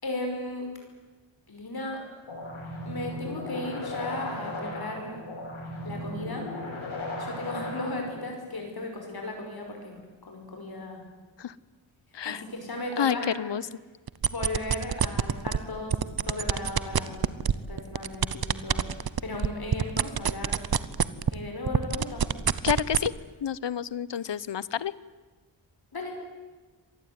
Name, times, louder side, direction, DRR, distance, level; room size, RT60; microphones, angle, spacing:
voice 1, 0.0-0.7 1.5-2.0 2.8-5.3 5.8-6.5 7.2-11.0 12.3-13.4 14.2-16.0 16.3-18.9 19.2-20.7 21.3-22.2 25.9-26.2, left 2 dB, 50° left, 2 dB, 5.4 m, -36 dB
sound 1, 2.3-8.3, left 1 dB, 85° left, 6.8 m, -36 dB
voice 2, 13.0-13.6 22.6-23.1 23.4-24.9, left 8 dB, 65° left, 19 dB, 0.9 m, -29 dB
sound 2, 14.1-15.6 15.9-21.4 21.7-23.1, right 7 dB, 50° right, 1.0 m, -25 dB
26.0 x 19.5 x 9.6 m, 1.3 s
wide cardioid pair, 125°, 46 cm